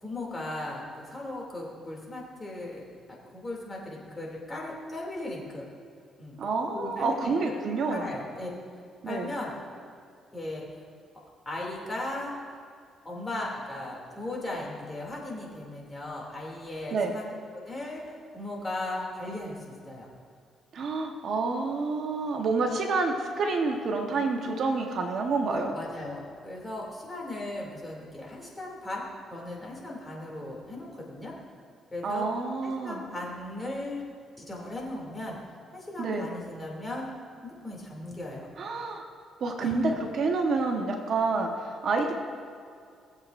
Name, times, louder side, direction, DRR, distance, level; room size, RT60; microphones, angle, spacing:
voice 1, 0.0-5.7 6.2-6.4 6.7-7.6 7.9-8.5 9.0-9.5 10.3-10.6 11.5-12.3 13.0-17.2 17.5-20.1 25.5-31.3 31.9-32.3 32.6-34.0 34.4-35.4 35.7-37.1 37.4-38.5 39.6-40.0, left 2 dB, 20° left, -2 dB, 2.6 m, -37 dB
voice 2, 6.4-8.1 9.0-9.3 16.9-17.1 20.7-25.7 32.0-33.0 36.0-36.3 38.6-39.0 39.4-42.1, right 3 dB, 60° right, 2 dB, 1.2 m, -28 dB
19.0 x 7.8 x 2.6 m, 2.3 s
cardioid pair, 90°, 0 cm